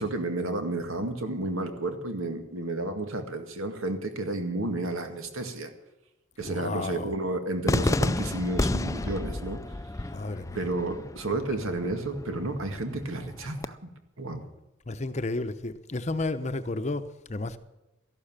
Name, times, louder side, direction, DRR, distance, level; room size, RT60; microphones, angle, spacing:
voice 1, 0.0-5.7 6.4-9.7 10.5-13.8 14.2-14.4, right 2 dB, 80° right, 2.0 m, -31 dB
voice 2, 6.4-7.1 10.0-10.6 14.9-17.6, left 2 dB, 35° left, 0.8 m, -32 dB
Cheering / Fireworks, 7.7-13.7, left 2 dB, 15° left, 0.4 m, -31 dB
14.0 x 12.0 x 7.4 m
head